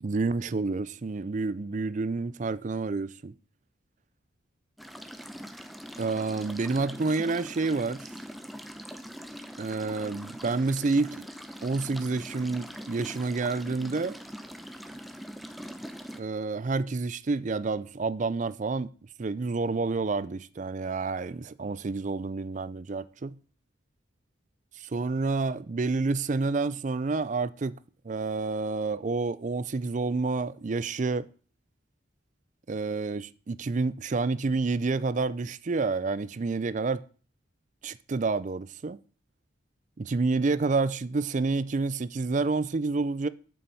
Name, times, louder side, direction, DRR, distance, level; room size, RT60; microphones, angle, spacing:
voice 1, 0.0-3.3 6.0-8.1 9.6-11.3 11.6-14.2 16.2-18.9 19.2-23.4 24.8-27.8 28.0-31.3 32.7-37.0 37.8-39.0 40.0-43.3, right 3 dB, 40° right, 0.4 m, -29 dB
sound 1, 4.8-16.2, equal, ahead, 0.7 m, -43 dB
9.0 x 7.0 x 5.4 m
head